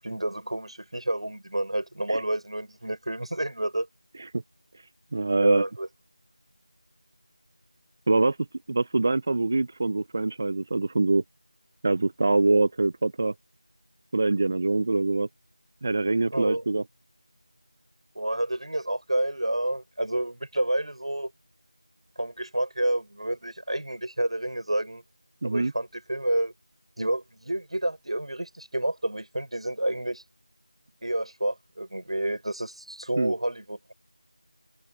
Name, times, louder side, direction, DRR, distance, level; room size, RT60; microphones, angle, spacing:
voice 1, 0.0-3.9 5.4-5.9 16.3-16.7 18.1-21.3 22.2-25.0 25.4-26.5 27.0-30.2 31.0-33.9, right 1 dB, 65° right, 5.9 m, -29 dB
voice 2, 5.1-5.6 8.1-8.4 8.7-11.2 11.8-13.3 14.1-15.3 15.8-16.8 25.4-25.7 33.2-33.3, right 3 dB, 20° right, 0.5 m, -24 dB
open air
figure-of-eight pair, 175°, 3 cm